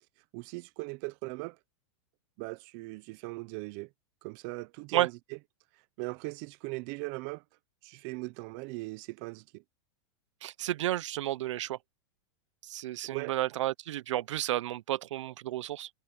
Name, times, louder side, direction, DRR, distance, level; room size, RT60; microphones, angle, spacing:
voice 1, 0.3-1.6 2.4-3.9 4.2-5.2 6.0-7.4 7.8-9.6 13.1-13.3, right 25 dB, 35° right, 0.6 m, -39 dB
voice 2, 10.4-11.8 12.7-15.9, right 14 dB, 75° right, 0.7 m, -32 dB
supercardioid pair, 160°, 16 cm